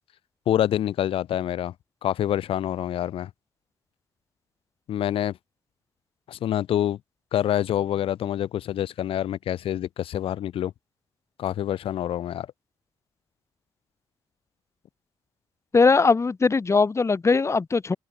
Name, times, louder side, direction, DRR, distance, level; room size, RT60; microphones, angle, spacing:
voice 1, 0.5-1.7 2.0-3.3 4.9-5.4 6.3-7.0 7.3-10.7 11.4-12.5, left 11 dB, 70° left, 2.6 m, -26 dB
voice 2, 15.7-18.0, left 4 dB, 30° left, 2.1 m, -20 dB
supercardioid pair, 70°, 10 cm